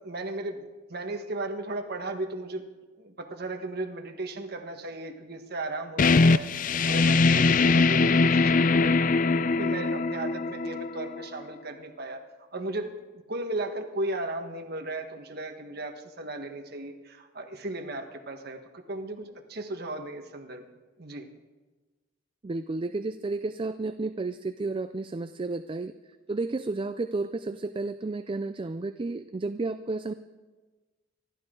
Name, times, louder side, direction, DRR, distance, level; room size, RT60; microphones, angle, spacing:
voice 1, 0.0-2.6 3.0-6.5 6.9-9.0 9.3-12.2 12.5-20.7 21.0-21.3, right 2 dB, 55° right, 4 dB, 1.5 m, -36 dB
sound 1, 6.0-11.4, left 4 dB, 45° left, 0.4 m, -22 dB
voice 2, 22.4-25.9 26.3-30.1, right 3 dB, 25° right, 11 dB, 0.4 m, -32 dB
26.0 x 12.0 x 3.8 m, 1.3 s
head